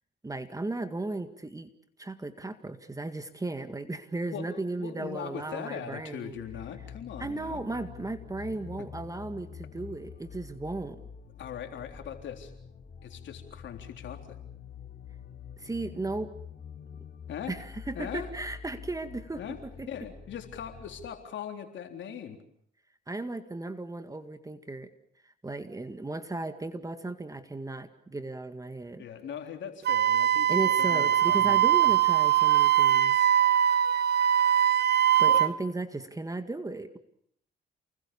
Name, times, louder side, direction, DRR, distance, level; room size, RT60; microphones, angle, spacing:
voice 1, 0.2-1.7 2.0-6.4 7.2-11.0 15.6-16.3 17.5-19.9 23.1-24.9 25.2-29.1 30.5-33.3 35.2-37.0, right 2 dB, 15° right, 9 dB, 2.0 m, -35 dB
voice 2, 4.3-7.6 8.8-8.9 11.4-12.5 13.0-14.4 17.3-17.6 17.9-18.3 19.4-19.6 19.9-22.4 29.0-32.0 35.3-35.4, left 8 dB, 70° left, 5 dB, 3.7 m, -40 dB
sound 1, 6.3-21.1, left 7 dB, 50° left, 3.2 m, -46 dB
Wind instrument woodwind instrument, 29.9-35.5, right 10 dB, 55° right, 1.0 m, -22 dB
29.0 x 21.0 x 7.1 m, 0.67 s
cardioid pair, 90°, 20 cm